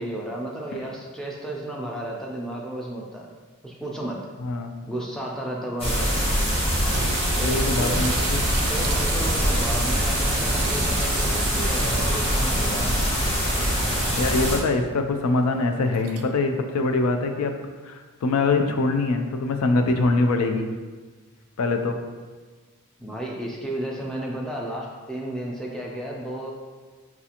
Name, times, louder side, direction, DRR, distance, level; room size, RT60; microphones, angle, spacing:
voice 1, 0.0-3.3 3.6-4.3 4.8-6.1 7.4-8.1 8.7-13.1 23.0-26.5, right 1 dB, ahead, -3 dB, 0.4 m, -33 dB
voice 2, 4.4-4.7 7.4-8.4 14.2-17.5 17.8-20.7 21.6-22.0, left 3 dB, 80° left, 5 dB, 0.4 m, -23 dB
sound 1, 5.8-14.6, equal, 25° left, 1.0 m, -23 dB
sound 2, 6.9-14.1 14.5-14.6 15.8-16.3, right 8 dB, 75° right, 0.4 m, -36 dB
5.8 x 2.4 x 2.8 m, 1.4 s
head